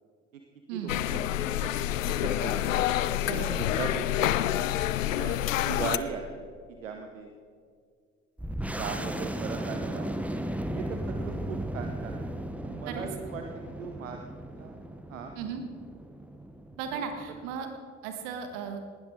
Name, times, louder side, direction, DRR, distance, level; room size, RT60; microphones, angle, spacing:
voice 1, 0.7-2.9 3.4-4.6 5.1-5.4 5.7-7.3 8.7-10.3 10.7-12.2 12.6-14.2 14.5-14.8 15.1-15.3 16.9-17.0, right 6 dB, 80° right, 5 dB, 0.9 m, -39 dB
sound 1, 0.9-6.0, left 12 dB, 80° left, 0.5 m, -28 dB
voice 2, 3.2-3.6 12.9-13.1 15.4-15.6 16.8-17.7 18.0-18.8, right 7 dB, 60° right, 6 dB, 1.7 m, -36 dB
sound 2, 8.4-17.6, right 1 dB, 5° right, 0.9 m, -36 dB
19.0 x 12.5 x 3.7 m, 2.1 s
figure-of-eight pair, 55°, 39 cm